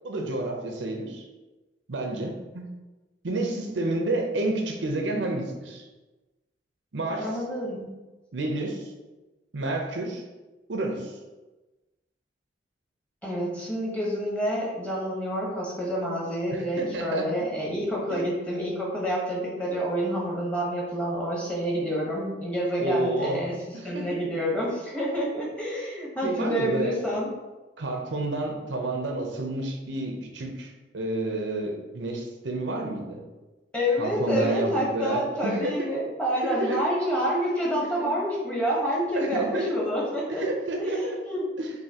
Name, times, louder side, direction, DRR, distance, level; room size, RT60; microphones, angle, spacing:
voice 1, 0.0-1.2 1.9-2.7 3.2-5.9 6.9-7.3 8.3-8.9 9.5-10.2 10.7-11.1 16.5-17.3 18.1-18.2 21.7-21.8 22.8-24.2 26.2-26.9 27.8-33.2 34.0-35.9 36.4-36.8 38.0-38.2 39.1-39.8 40.3-41.2 41.6-41.7, right 2 dB, 90° right, 2 dB, 0.7 m, -30 dB
voice 2, 7.1-7.9 13.2-23.5 23.8-27.3 33.7-40.4 40.8-41.4, equal, 5° left, -4 dB, 1.1 m, -28 dB
5.6 x 2.7 x 2.9 m, 1.1 s
head